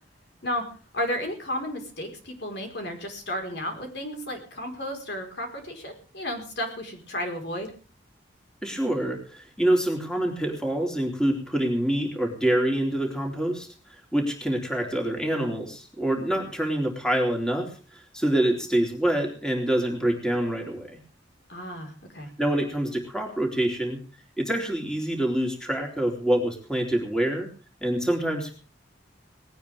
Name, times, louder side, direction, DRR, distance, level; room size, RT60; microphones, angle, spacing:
voice 1, 0.9-7.7 21.5-22.3, left 1 dB, 60° left, 4 dB, 4.7 m, -33 dB
voice 2, 8.6-13.7 14.1-21.0 22.4-24.0 24.4-27.5 27.8-28.5, right 1 dB, 5° left, 1 dB, 3.8 m, -26 dB
19.5 x 17.5 x 3.6 m, 0.38 s
head